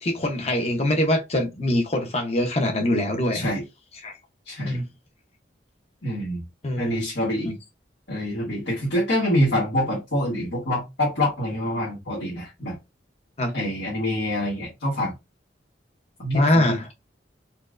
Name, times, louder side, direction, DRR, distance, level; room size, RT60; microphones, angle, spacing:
voice 1, 0.0-3.5 4.0-4.1 4.6-4.9 6.6-7.0 7.4-7.6 13.4-13.5 16.3-16.9, left 1 dB, 35° left, 0.8 m, -23 dB
voice 2, 3.3-3.6 4.4-4.8 6.0-6.4 6.8-7.5 8.1-12.7 13.5-15.1 16.2-16.7, left 1 dB, 70° left, 1.5 m, -26 dB
4.4 x 2.3 x 2.5 m
head